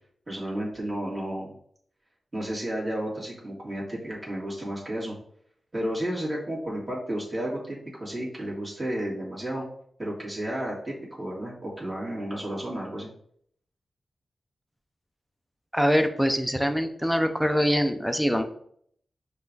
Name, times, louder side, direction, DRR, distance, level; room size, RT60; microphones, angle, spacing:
voice 1, 0.3-1.5 2.3-5.1 5.7-9.7 10.0-13.1, right 1 dB, 25° right, -5 dB, 1.8 m, -32 dB
voice 2, 15.7-18.4, equal, ahead, 6 dB, 0.6 m, -24 dB
5.5 x 2.4 x 3.9 m, 0.65 s
cardioid pair, 75°, 0 cm